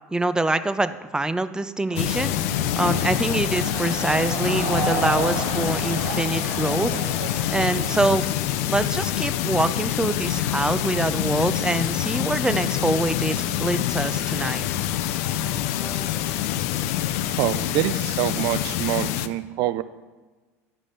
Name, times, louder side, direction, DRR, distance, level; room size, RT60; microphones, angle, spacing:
voice 1, 0.1-6.9 7.5-8.3 8.7-14.6, right 2 dB, 10° right, 12 dB, 0.5 m, -25 dB
sound 1, 1.9-19.3, left 12 dB, 70° left, 0.5 m, -26 dB
sound 2, 1.9-8.0, right 4 dB, 75° right, 1.3 m, -32 dB
sound 3, 10.2-16.4, left 3 dB, 10° left, 1.1 m, -40 dB
voice 2, 17.0-19.8, right 14 dB, 55° right, 14 dB, 0.5 m, -26 dB
10.5 x 5.0 x 5.6 m, 1.3 s
hypercardioid pair, 80°, 8 cm